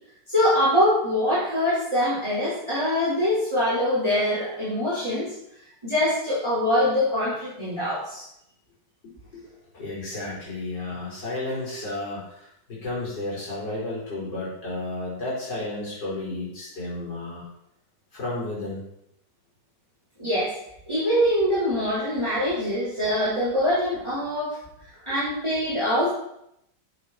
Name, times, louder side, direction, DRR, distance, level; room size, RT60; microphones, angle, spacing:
voice 1, 0.3-5.3 5.8-8.2 20.2-20.5 20.9-24.6 25.1-26.1, left 1 dB, 15° right, -11 dB, 4.3 m, -23 dB
voice 2, 9.7-17.4 18.1-18.9 24.9-25.2, left 2 dB, 65° left, -7 dB, 5.4 m, -32 dB
13.0 x 7.6 x 4.4 m, 0.76 s
omnidirectional pair, 2.0 m